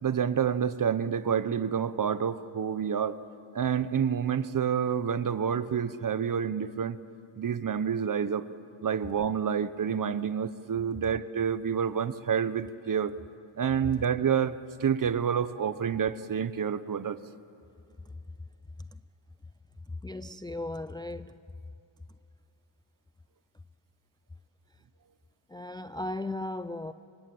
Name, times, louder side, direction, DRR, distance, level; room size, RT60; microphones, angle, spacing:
voice 1, 0.0-3.2 3.5-7.0 7.4-8.4 8.8-13.1 13.6-17.2, right 7 dB, 40° right, 14 dB, 1.0 m, -28 dB
voice 2, 19.9-21.4 25.5-26.9, left 2 dB, 10° left, 12 dB, 0.5 m, -36 dB
26.0 x 22.5 x 7.9 m, 2.7 s
cardioid pair, 80°, 49 cm